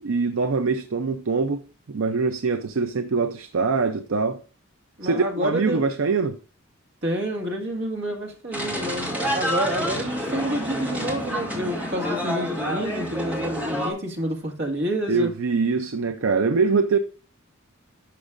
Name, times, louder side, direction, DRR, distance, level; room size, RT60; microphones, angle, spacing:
voice 1, 0.0-4.4 5.0-6.4 15.1-17.0, right 4 dB, 70° right, 0.5 m, -23 dB
voice 2, 5.0-5.9 7.0-15.3, right 1 dB, 55° right, 1.8 m, -28 dB
sound 1, 8.5-13.9, equal, 10° right, 2.3 m, -28 dB
11.5 x 6.2 x 2.5 m
head